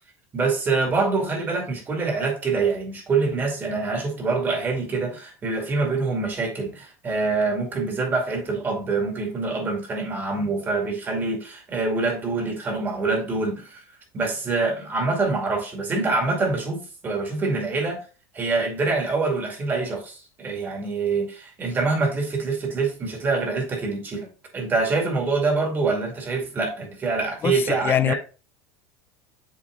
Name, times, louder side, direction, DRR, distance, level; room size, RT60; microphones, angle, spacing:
voice 1, 0.3-13.8 14.1-18.0 18.3-24.3 24.5-28.1, right 3 dB, 25° right, 2.2 m, -25 dB
voice 2, 27.4-28.1, left 10 dB, 30° left, 0.4 m, -23 dB
7.1 x 4.1 x 3.6 m
supercardioid pair, 125°, 8 cm